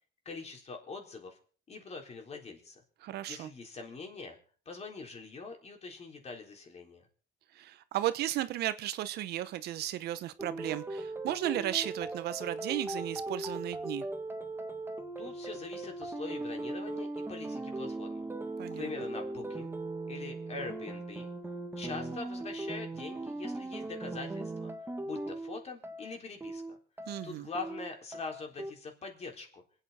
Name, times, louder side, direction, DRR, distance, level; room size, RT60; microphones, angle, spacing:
voice 1, 0.3-1.4 1.7-2.8 3.3-4.4 4.7-7.1 15.2-18.3 18.7-19.8 20.1-21.3 21.8-24.7 25.0-26.8 27.2-29.6, left 4 dB, 40° left, 2 dB, 3.9 m, -43 dB
voice 2, 3.0-3.5 7.5-14.0 18.6-18.9 27.1-27.5, right 13 dB, 75° right, 14 dB, 0.9 m, -35 dB
sound 1, 10.4-28.7, right 2 dB, 15° right, 1.5 m, -39 dB
26.5 x 8.9 x 4.3 m, 0.42 s
cardioid pair, 110°, 17 cm